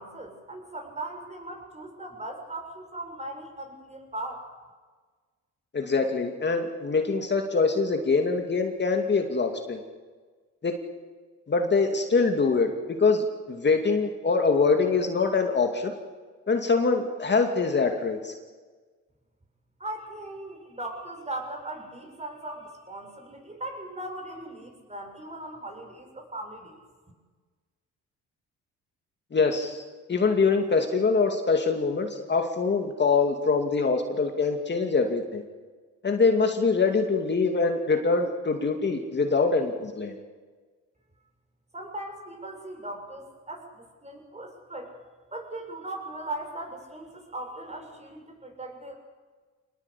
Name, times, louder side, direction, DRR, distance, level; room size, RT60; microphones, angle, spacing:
voice 1, 0.0-4.4 19.8-26.8 41.7-44.9 45.3-48.9, right 1 dB, 20° right, 3 dB, 7.3 m, -38 dB
voice 2, 5.7-9.8 10.6-10.7 11.5-12.7 13.0-15.9 16.5-18.3 29.3-29.8 30.1-35.4 36.0-40.1, left 4 dB, 35° left, 4 dB, 2.5 m, -24 dB
25.5 x 20.0 x 8.5 m, 1.4 s
cardioid pair, 90°, 30 cm